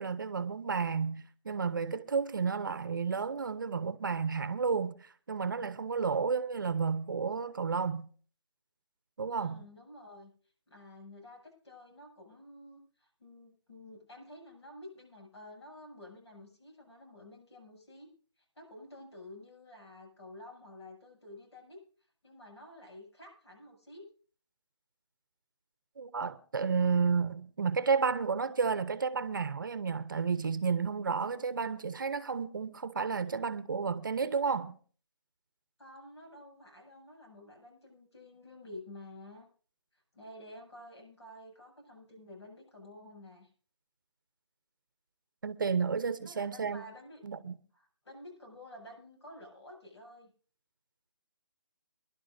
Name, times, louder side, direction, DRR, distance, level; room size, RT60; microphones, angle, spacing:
voice 1, 0.0-8.1 9.2-9.6 26.0-34.8 45.4-46.8 47.2-47.6, right 5 dB, 45° right, 0.8 m, -31 dB
voice 2, 9.3-10.3 10.7-18.1 18.6-21.8 22.2-24.0 35.8-39.5 39.9-43.5 46.2-47.2 47.7-50.3, left 1 dB, 70° left, 7.3 m, -51 dB
25.5 x 11.5 x 2.6 m
hypercardioid pair, 175°, 15 cm